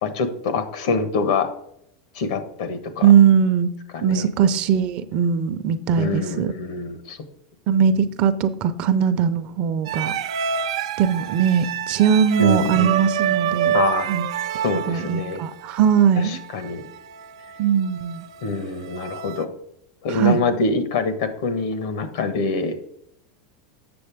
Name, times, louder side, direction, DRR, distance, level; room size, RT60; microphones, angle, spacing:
voice 1, 0.0-1.5 2.1-3.1 3.9-4.3 6.0-7.2 12.4-12.9 13.7-14.1 14.6-15.4 16.2-16.9 18.4-19.5 20.0-22.9, left 4 dB, 70° left, 10 dB, 1.3 m, -25 dB
voice 2, 3.0-3.7 4.0-6.5 7.7-10.1 11.0-13.7 14.1-14.3 14.9-16.3 17.6-18.2 20.1-20.4, right 8 dB, 40° right, 10 dB, 0.6 m, -19 dB
sound 1, 9.9-19.4, right 8 dB, 90° right, 0.6 m, -28 dB
7.8 x 6.9 x 3.5 m, 0.73 s
supercardioid pair, 160°, 3 cm